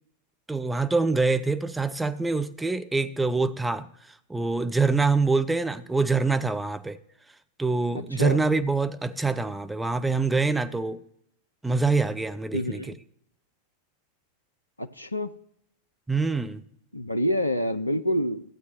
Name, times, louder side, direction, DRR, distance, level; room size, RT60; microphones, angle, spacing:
voice 1, 0.5-3.9 4.3-7.0 7.6-11.0 11.6-12.8 16.1-16.6, right 3 dB, 5° right, 0.5 m, -25 dB
voice 2, 7.9-8.4 12.5-13.0 14.8-15.3 16.9-18.4, equal, 85° left, 0.4 m, -27 dB
15.0 x 8.1 x 3.0 m
figure-of-eight pair, 90°, 0 cm